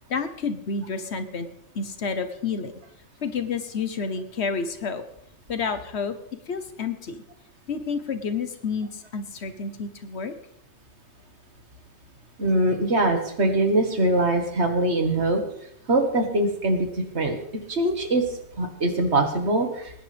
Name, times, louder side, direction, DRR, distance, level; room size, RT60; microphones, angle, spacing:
voice 1, 0.1-1.5 1.7-2.7 3.2-5.0 5.5-6.2 6.5-7.2 7.7-10.3, left 5 dB, 65° left, 9 dB, 1.3 m, -29 dB
voice 2, 12.4-15.4 15.9-17.4 17.7-18.2 18.6-20.0, right 2 dB, 65° right, 4 dB, 1.9 m, -23 dB
20.5 x 10.0 x 3.4 m, 0.74 s
omnidirectional pair, 1.2 m